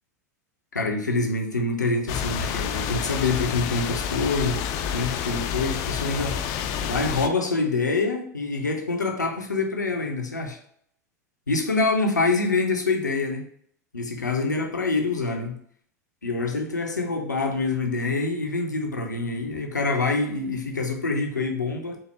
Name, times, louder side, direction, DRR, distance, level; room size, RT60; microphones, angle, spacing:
voice 1, 0.7-4.6 4.9-6.4 6.8-10.6 11.5-13.4 13.9-15.6 16.2-22.0, left 3 dB, 90° left, 3 dB, 0.6 m, -26 dB
sound 1, 2.1-7.3, left 8 dB, 45° left, 0.3 m, -29 dB
4.1 x 2.1 x 3.2 m, 0.66 s
figure-of-eight pair, 90°, 9 cm